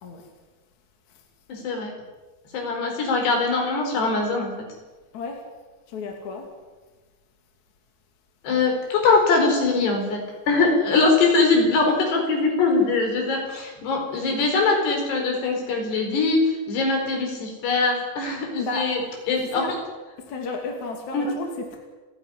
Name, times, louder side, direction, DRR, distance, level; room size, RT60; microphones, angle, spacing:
voice 1, 1.5-1.9 2.5-4.5 8.4-10.2 10.5-16.4 16.7-19.0 19.3-19.8 21.1-21.3, left 3 dB, 60° left, 2 dB, 6.5 m, -22 dB
voice 2, 5.9-6.5 18.6-18.9 19.3-19.7 20.3-21.8, left 3 dB, 45° left, 2 dB, 3.5 m, -32 dB
30.0 x 11.0 x 10.0 m, 1.3 s
omnidirectional pair, 5.4 m